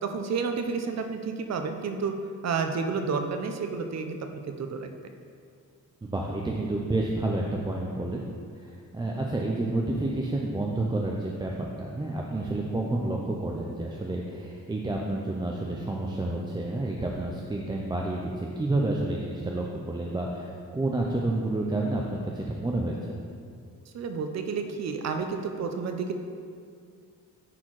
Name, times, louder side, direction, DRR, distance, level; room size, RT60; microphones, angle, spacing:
voice 1, 0.0-2.1 2.4-4.9 23.9-26.1, right 5 dB, 55° right, 6 dB, 0.7 m, -30 dB
voice 2, 6.0-8.2 8.5-23.1, right 2 dB, 15° right, -2 dB, 0.5 m, -30 dB
9.8 x 4.4 x 4.7 m, 2.3 s
wide cardioid pair, 160°, 31 cm